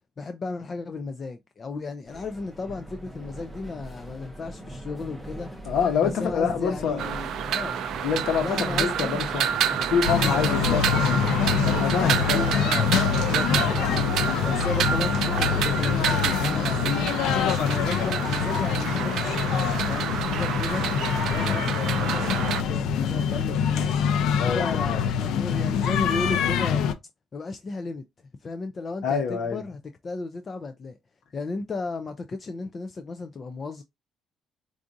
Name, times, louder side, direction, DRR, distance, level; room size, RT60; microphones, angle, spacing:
voice 1, 0.2-5.5 6.0-7.8 8.4-9.2 10.2-10.8 12.2-14.1 14.4-16.9 17.4-20.9 21.3-24.0 24.4-26.8 27.3-28.0 28.4-31.0 31.3-33.8, left 3 dB, 25° left, 0.3 m, -34 dB
sound 1, 2.1-16.0, right 1 dB, 5° right, 0.7 m, -40 dB
voice 2, 5.6-7.0 8.0-9.5 9.8-11.0 11.6-12.4 24.4-25.0 29.0-29.6, left 6 dB, 70° left, 1.1 m, -26 dB
sound 2, 7.0-22.6, right 9 dB, 65° right, 0.3 m, -29 dB
sound 3, 10.0-26.9, left 7 dB, 85° left, 0.5 m, -25 dB
4.7 x 2.5 x 2.6 m
cardioid pair, 175°, 0 cm